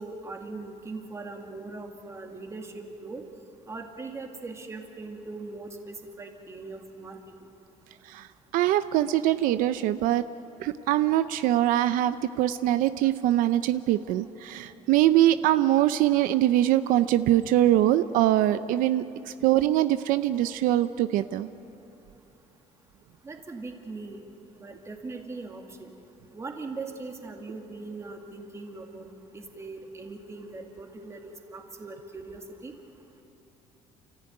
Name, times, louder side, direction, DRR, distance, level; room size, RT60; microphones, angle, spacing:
voice 1, 0.0-3.2 3.7-7.2 23.2-24.2 24.6-25.9 26.3-32.7, right 3 dB, 20° right, 3 dB, 2.2 m, -40 dB
voice 2, 8.5-10.2 10.6-21.5, right 13 dB, 85° right, 12 dB, 0.6 m, -23 dB
29.5 x 14.5 x 9.4 m, 3.0 s
cardioid pair, 150°, 14 cm